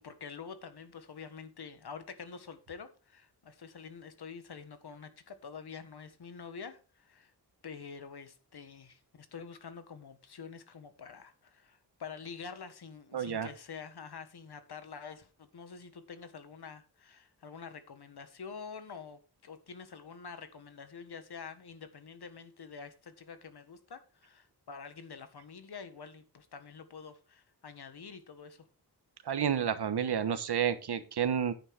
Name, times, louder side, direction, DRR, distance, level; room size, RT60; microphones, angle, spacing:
voice 1, 0.0-7.3 7.6-28.7, left 6 dB, 75° left, 1.6 m, -47 dB
voice 2, 13.1-13.5 29.2-31.5, right 8 dB, 80° right, 1.2 m, -30 dB
10.5 x 9.2 x 3.5 m
wide cardioid pair, 95°, 40 cm